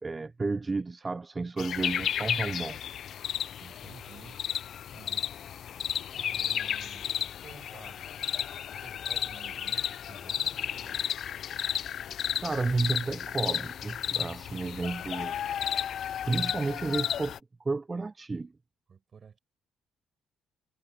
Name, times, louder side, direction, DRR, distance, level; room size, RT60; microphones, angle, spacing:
voice 1, 0.0-3.0 12.4-15.4 16.2-18.5, right 3 dB, 25° right, 0.5 m, -32 dB
sound 1, 1.6-17.4, left 9 dB, 60° left, 0.4 m, -33 dB
voice 2, 3.6-4.4 4.9-5.3 6.2-8.0 8.7-11.1 18.9-19.4, right 6 dB, 45° right, 5.8 m, -52 dB
supercardioid pair, 65°, 0 cm